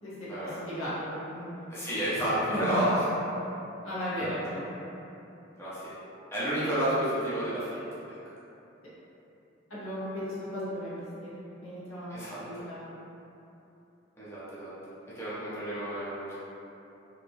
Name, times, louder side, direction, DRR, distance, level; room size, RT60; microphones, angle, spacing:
voice 1, 0.4-1.7 2.5-2.9 3.8-4.7 9.7-12.2 12.4-12.9, equal, 80° left, -9 dB, 1.0 m, -36 dB
voice 2, 1.7-3.1 4.2-4.3 5.6-5.9 6.3-7.8 12.1-12.4 14.2-14.7 15.2-16.3, equal, 15° left, -12 dB, 0.8 m, -30 dB
3.0 x 2.9 x 2.7 m, 2.9 s
head